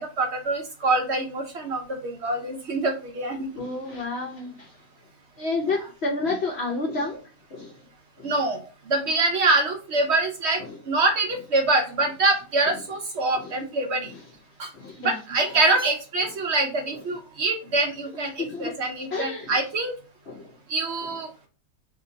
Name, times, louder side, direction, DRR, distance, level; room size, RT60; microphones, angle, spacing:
voice 1, 0.0-3.5 8.2-8.6 8.9-10.6 10.9-14.1 14.6-14.7 15.0-19.9 20.7-21.5, right 2 dB, 60° right, 3 dB, 0.7 m, -25 dB
voice 2, 3.6-4.7 5.4-7.2 7.5-7.8 8.2-8.3 10.6-10.8 13.3-13.5 14.0-14.2 14.7-15.2 15.5-15.6 16.9-17.0 18.1-19.6 20.3-20.5 21.0-21.1, left 3 dB, 55° left, 0 dB, 0.8 m, -31 dB
2.8 x 2.7 x 3.7 m, 0.35 s
omnidirectional pair, 1.6 m